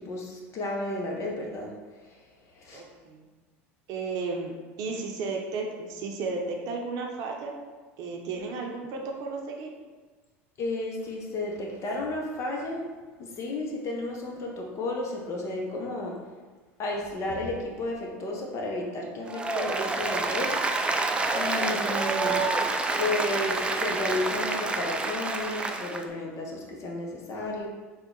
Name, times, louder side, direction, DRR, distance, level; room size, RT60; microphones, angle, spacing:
voice 1, 0.0-1.7 2.0-2.2 2.6-2.8 10.6-12.8 13.2-16.2 16.8-20.5 21.3-22.5 22.9-27.7, left 2 dB, 45° left, 0 dB, 0.8 m, -32 dB
voice 2, 2.7-3.3 3.9-4.5 4.8-7.5 8.0-9.7, right 4 dB, 60° right, 1 dB, 0.7 m, -33 dB
Applause, 19.3-26.0, right 3 dB, 15° right, 0.3 m, -28 dB
3.6 x 2.3 x 3.8 m, 1.4 s
hypercardioid pair, 90°, 7 cm